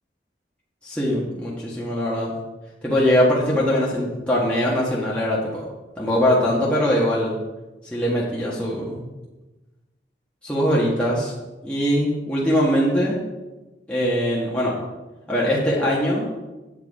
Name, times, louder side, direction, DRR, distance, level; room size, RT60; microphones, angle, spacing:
voice 1, 0.8-2.3 2.8-5.6 6.0-7.4 7.8-9.1 10.4-11.3 11.6-13.2 13.9-14.8 15.3-16.3, equal, 5° left, -7 dB, 1.5 m, -21 dB
8.2 x 7.8 x 4.7 m, 1.1 s
head